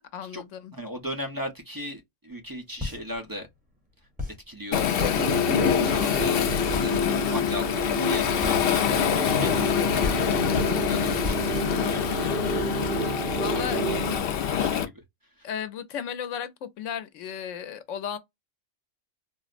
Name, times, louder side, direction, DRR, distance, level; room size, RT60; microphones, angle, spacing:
voice 1, 0.1-0.7 8.9-9.4 13.4-13.8 15.4-18.2, left 8 dB, 80° left, 1.0 m, -35 dB
voice 2, 0.7-3.5 4.5-9.7 10.3-12.6 13.4-14.1 14.4-14.9 15.3-15.6, equal, 25° right, 0.6 m, -38 dB
sound 1, 2.3-12.7, left 3 dB, 5° right, 0.9 m, -36 dB
Waves surf, 4.7-14.9, left 8 dB, 60° left, 0.7 m, -26 dB
sound 2, 5.2-14.2, left 1 dB, 50° right, 1.0 m, -29 dB
4.0 x 2.0 x 2.4 m
omnidirectional pair, 1.3 m